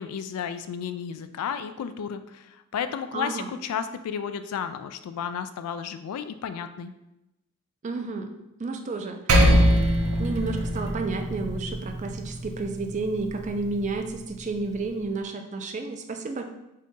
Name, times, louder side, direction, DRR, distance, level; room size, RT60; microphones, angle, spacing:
voice 1, 0.0-6.9, left 7 dB, 85° left, 11 dB, 0.3 m, -33 dB
voice 2, 3.1-3.5 7.8-8.3 8.6-9.5 10.2-16.4, right 3 dB, 35° right, 5 dB, 0.3 m, -31 dB
Percussion, 9.3-14.1, equal, 85° right, 0.6 m, -24 dB
3.9 x 2.7 x 3.5 m, 0.90 s
head